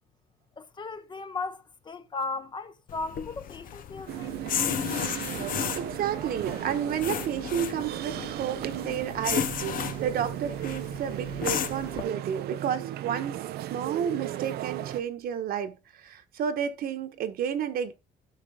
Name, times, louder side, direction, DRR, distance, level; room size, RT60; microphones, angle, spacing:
voice 1, 0.6-4.4, left 3 dB, 30° left, 0.9 m, -36 dB
sound 1, 2.9-12.0, left 9 dB, 60° left, 1.0 m, -34 dB
sound 2, 4.1-15.0, right 13 dB, 90° right, 0.7 m, -36 dB
voice 2, 5.8-13.4 13.7-15.7 16.0-17.9, right 8 dB, 70° right, 1.4 m, -31 dB
11.5 x 6.2 x 3.7 m
cardioid pair, 130°, 16 cm